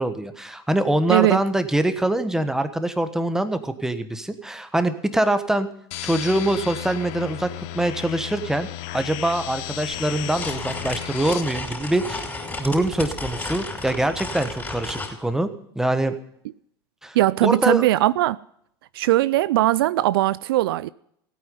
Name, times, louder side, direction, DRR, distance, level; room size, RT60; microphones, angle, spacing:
voice 1, 0.0-5.7 6.0-7.5 7.7-8.7 8.9-12.3 12.6-16.2 17.0-17.8, right 1 dB, 5° right, 1.3 m, -24 dB
voice 2, 1.1-1.4 17.1-18.4 18.9-20.9, right 15 dB, 70° right, 0.4 m, -19 dB
sound 1, 5.9-11.4, left 15 dB, 55° left, 0.8 m, -34 dB
sound 2, 9.9-15.2, left 3 dB, 15° left, 5.0 m, -33 dB
16.5 x 9.3 x 5.5 m
hypercardioid pair, 95°, 13 cm